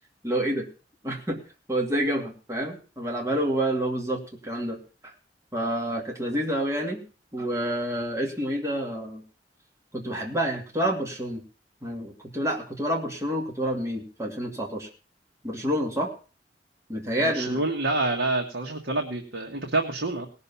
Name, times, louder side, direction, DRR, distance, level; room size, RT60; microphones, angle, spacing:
voice 1, 0.2-0.7 1.0-1.4 1.7-4.8 5.0-5.1 5.5-7.0 7.3-9.2 9.9-11.4 11.8-14.9 15.4-16.1 16.9-17.6, right 1 dB, 15° right, -1 dB, 2.5 m, -28 dB
voice 2, 17.2-20.3, right 2 dB, 90° right, 1 dB, 1.7 m, -27 dB
18.5 x 6.7 x 5.6 m, 0.36 s
head